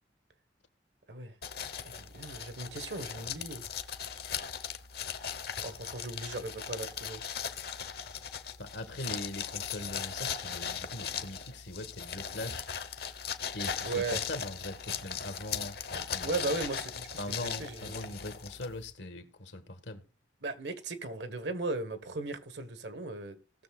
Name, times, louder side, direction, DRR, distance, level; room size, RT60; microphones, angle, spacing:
sound 1, 1.4-18.9, left 7 dB, 60° left, 0.9 m, -38 dB
voice 1, 1.8-3.7 5.6-7.2 13.8-14.2 16.2-18.2 20.4-23.4, right 3 dB, 75° right, 1.4 m, -37 dB
voice 2, 8.6-12.7 13.5-16.5 17.2-20.0, left 1 dB, 85° left, 1.6 m, -41 dB
18.0 x 6.7 x 2.4 m
head